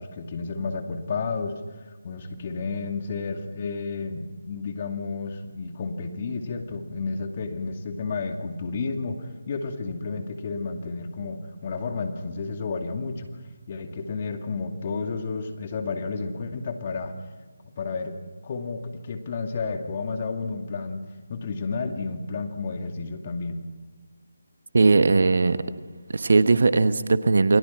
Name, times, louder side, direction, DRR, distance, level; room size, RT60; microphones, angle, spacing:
voice 1, 0.0-13.3 13.7-17.1 17.8-18.1 18.4-21.0 21.3-23.6, left 4 dB, 35° left, 5 dB, 2.4 m, -31 dB
voice 2, 24.7-25.6 26.1-27.6, right 3 dB, 60° right, 12 dB, 1.2 m, -19 dB
28.5 x 21.0 x 6.0 m, 1.3 s
figure-of-eight pair, 155°, 0 cm